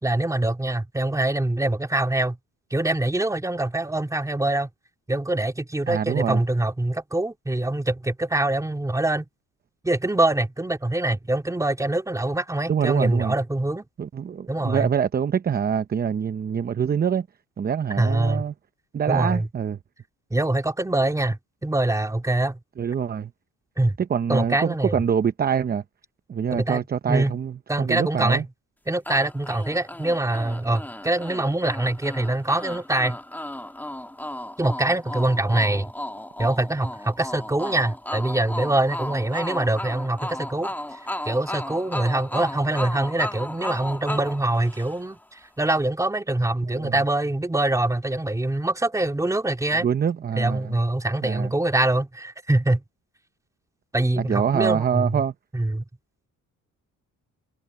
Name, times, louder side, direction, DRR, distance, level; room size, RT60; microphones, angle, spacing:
voice 1, 0.0-2.4 2.7-4.7 5.1-9.3 9.8-13.8 14.5-14.9 18.0-18.4 19.1-19.5 20.3-22.6 23.8-24.0 24.3-25.0 26.5-26.8 27.1-27.4 27.7-28.4 28.9-33.2 34.6-35.9 36.4-40.7 41.3-45.2 45.6-49.9 50.4-52.8 53.9-55.2 55.5-55.8, right 2 dB, 10° right, 3.0 m, -24 dB
voice 2, 5.9-6.4 12.7-13.3 14.0-17.3 17.6-18.5 18.9-19.8 22.8-23.3 24.0-25.8 26.3-28.4 46.7-46.9 49.8-50.7 51.2-51.5 54.2-55.3, right 7 dB, 30° right, 0.7 m, -25 dB
sound 1, 29.0-45.2, left 1 dB, 5° left, 2.2 m, -35 dB
cardioid pair, 115°, 31 cm